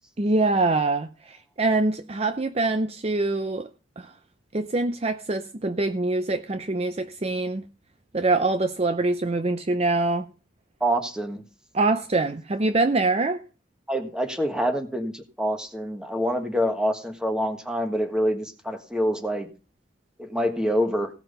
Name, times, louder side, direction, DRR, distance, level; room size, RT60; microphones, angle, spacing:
voice 1, 0.2-3.7 4.0-4.1 4.5-7.6 8.1-10.2 11.7-13.4, right 2 dB, 30° right, 0.6 m, -24 dB
voice 2, 10.8-11.4 13.9-19.5 20.2-21.1, equal, 5° right, 1.5 m, -26 dB
16.5 x 6.0 x 5.4 m
head